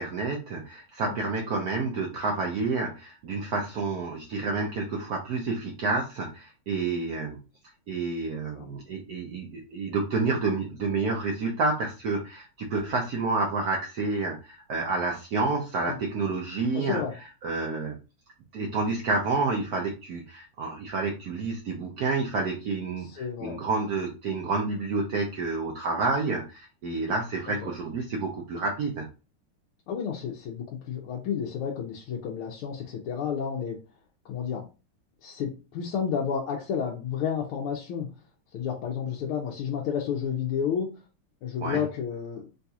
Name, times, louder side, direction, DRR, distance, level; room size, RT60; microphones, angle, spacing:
voice 1, 0.0-7.4 7.9-17.0 17.4-17.9 18.5-29.1 41.6-41.8, right 3 dB, 80° right, 1 dB, 0.8 m, -29 dB
voice 2, 16.7-17.1 23.0-23.6 27.6-27.7 29.9-33.8 34.2-34.6 35.2-38.1 38.5-40.9 41.4-42.5, left 7 dB, 80° left, -1 dB, 1.5 m, -31 dB
3.9 x 2.3 x 2.7 m, 0.30 s
omnidirectional pair, 2.4 m